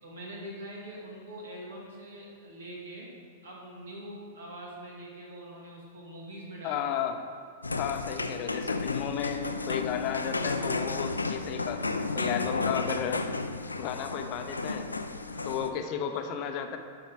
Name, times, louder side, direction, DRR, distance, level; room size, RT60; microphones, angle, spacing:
voice 1, 0.0-3.1 3.4-7.0 15.2-16.4, right 1 dB, 65° right, -3 dB, 2.4 m, -44 dB
voice 2, 6.6-7.2 7.8-13.2 13.8-14.9 15.5-16.8, left 8 dB, 40° left, 6 dB, 0.7 m, -33 dB
sound 1, 7.6-15.7, left 3 dB, 80° left, 0.4 m, -33 dB
11.5 x 6.0 x 3.8 m, 2.2 s
figure-of-eight pair, 95°, 0 cm